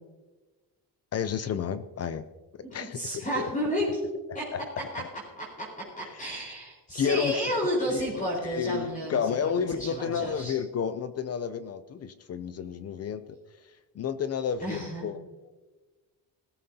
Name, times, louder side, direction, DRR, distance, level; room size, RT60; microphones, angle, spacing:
voice 1, 1.1-2.2 2.7-3.5 5.0-5.1 6.1-6.4 6.9-7.4 7.9-13.2 14.0-15.2, left 7 dB, 40° left, 12 dB, 0.5 m, -31 dB
voice 2, 2.6-4.0 4.3-4.5 4.8-4.9 5.4-9.2 9.7-10.6 14.6-15.1, equal, 20° left, -4 dB, 4.2 m, -31 dB
20.5 x 14.0 x 2.8 m, 1.2 s
cardioid pair, 165°, 41 cm